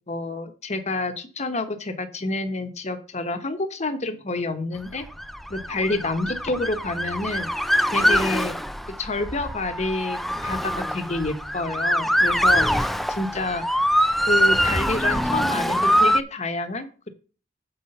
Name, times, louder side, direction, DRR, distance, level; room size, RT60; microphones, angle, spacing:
voice 1, 0.1-5.0 5.5-7.5 7.9-8.5 9.0-13.6 14.2-17.1, left 2 dB, 40° left, 9 dB, 1.2 m, -28 dB
Motor vehicle (road) / Siren, 5.1-16.2, equal, ahead, 0.4 m, -23 dB
7.5 x 5.7 x 5.5 m, 0.37 s
head